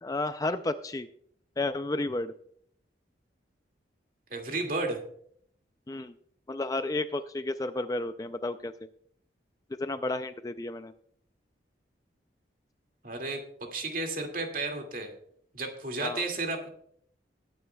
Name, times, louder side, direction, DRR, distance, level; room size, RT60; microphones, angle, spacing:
voice 1, 0.0-1.1 1.6-2.3 5.9-6.1 6.5-8.7 9.7-10.9 16.0-16.3, left 2 dB, 20° left, 10 dB, 0.4 m, -32 dB
voice 2, 4.3-5.0 13.0-13.4 13.7-15.1 15.5-16.7, right 2 dB, 45° right, 3 dB, 2.2 m, -32 dB
20.5 x 9.4 x 2.3 m, 0.65 s
head